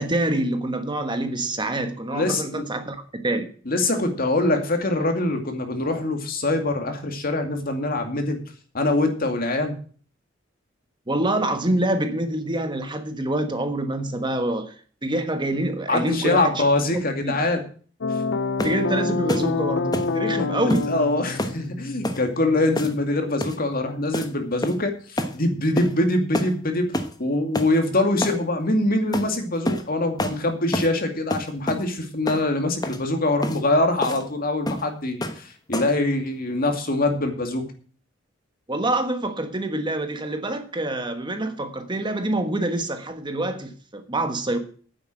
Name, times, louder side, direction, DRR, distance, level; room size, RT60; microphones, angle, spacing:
voice 1, 0.0-3.5 11.1-14.7 15.0-16.5 17.2-17.3 18.6-20.9 38.7-44.6, right 1 dB, 25° right, 7 dB, 1.3 m, -26 dB
voice 2, 2.1-2.7 3.7-8.4 8.7-9.8 15.9-17.6 20.9-26.9 27.2-37.6, left 2 dB, 50° left, 5 dB, 2.4 m, -23 dB
sound 1, 18.0-23.0, left 3 dB, 70° left, 0.7 m, -27 dB
sound 2, 18.6-18.8 19.3-19.5 19.9-20.1 20.7-20.9 21.4-21.6 22.0-22.2 22.7-23.1 23.4-23.6 24.1-24.3 24.6-24.9 25.2-25.4 25.8-25.9 26.3-26.5 26.9-27.2 27.5-27.7 28.2-28.4 29.1-29.3 29.6-29.9 30.2-30.4 30.7-30.9 31.3-31.8 32.3-32.4 32.8-33.0 33.4-33.6 34.0-34.2 34.7-34.9 35.2-35.4 35.7-36.0, left 1 dB, 20° left, 1.2 m, -27 dB
9.6 x 8.1 x 7.7 m, 0.42 s
head